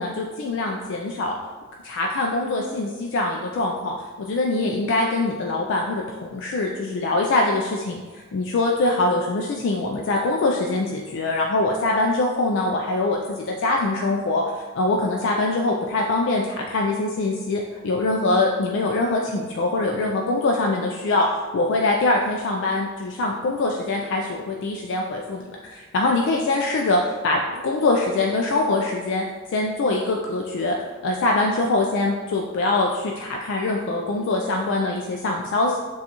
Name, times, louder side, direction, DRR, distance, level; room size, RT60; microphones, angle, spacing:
voice 1, 0.0-1.3 1.8-14.4 14.8-21.3 21.5-29.2 29.5-30.8 31.0-35.8, left 2 dB, 60° left, 0 dB, 0.4 m, -23 dB
6.4 x 2.4 x 2.9 m, 1.3 s
head